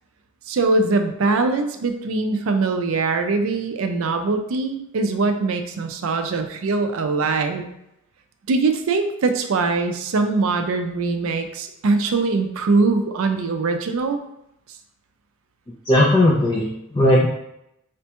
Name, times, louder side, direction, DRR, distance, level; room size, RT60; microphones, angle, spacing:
voice 1, 0.5-7.6 8.5-14.2, right 3 dB, 65° right, 7 dB, 0.4 m, -22 dB
voice 2, 15.9-17.3, left 1 dB, 20° left, -3 dB, 0.4 m, -17 dB
5.0 x 2.2 x 2.8 m, 0.81 s
head